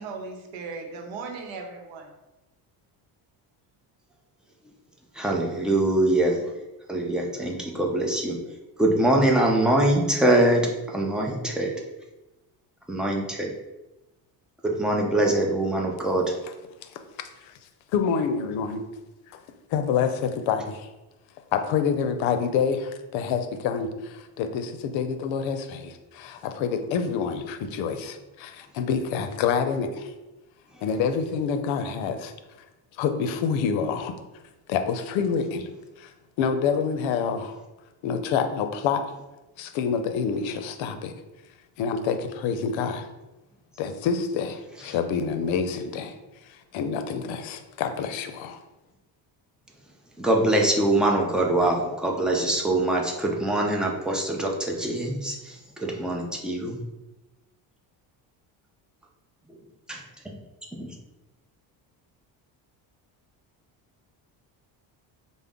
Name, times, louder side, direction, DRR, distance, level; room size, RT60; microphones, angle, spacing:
voice 1, 0.0-2.1, right 4 dB, 80° right, 4 dB, 0.9 m, -37 dB
voice 2, 5.2-6.4 6.9-8.4 8.8-10.6 10.9-11.7 12.9-13.5 14.6-16.3 50.2-56.8 60.8-60.9, right 1 dB, ahead, -1 dB, 0.4 m, -23 dB
voice 3, 17.2-17.5 17.9-18.8 19.3-19.4 19.7-20.9 21.5-30.1 30.8-32.3 33.0-34.1 34.7-35.7 36.0-36.1 36.4-37.6 38.0-39.0 39.6-41.1 41.8-43.1 43.8-46.2 46.5-48.6, left 6 dB, 80° left, 8 dB, 0.6 m, -27 dB
5.2 x 2.1 x 3.5 m, 1.0 s
cardioid pair, 125°, 45 cm